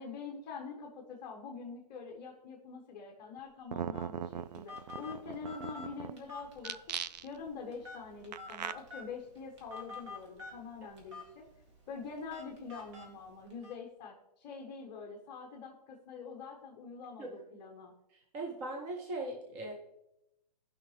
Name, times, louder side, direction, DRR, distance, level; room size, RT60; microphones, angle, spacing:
voice 1, 0.0-7.0 7.2-11.4 11.9-17.9, left 5 dB, 20° left, 0 dB, 0.9 m, -45 dB
sound 1, 3.4-3.5 3.7-6.1 6.6-7.5 8.3-8.7, right 9 dB, 80° right, 0.4 m, -39 dB
Telephone, 3.9-13.7, left 3 dB, 40° right, 2.2 m, -50 dB
voice 2, 18.1-19.7, right 2 dB, 10° right, 0 dB, 0.3 m, -39 dB
15.5 x 5.6 x 3.1 m, 0.88 s
hypercardioid pair, 165°, 21 cm